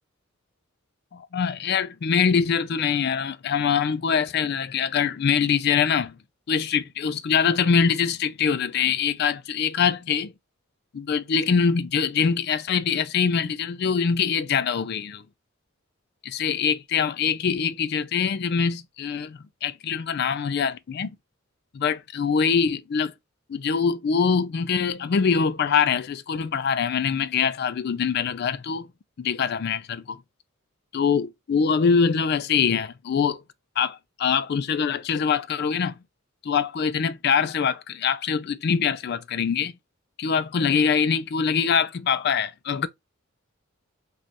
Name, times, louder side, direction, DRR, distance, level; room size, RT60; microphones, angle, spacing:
voice 1, 1.1-6.2 6.5-10.3 10.9-15.2 16.2-21.2 21.7-23.1 23.5-28.9 29.2-30.2 30.9-33.4 33.8-35.9 36.4-39.7 40.2-42.9, left 6 dB, 55° left, 0.4 m, -24 dB
5.0 x 2.3 x 2.8 m
head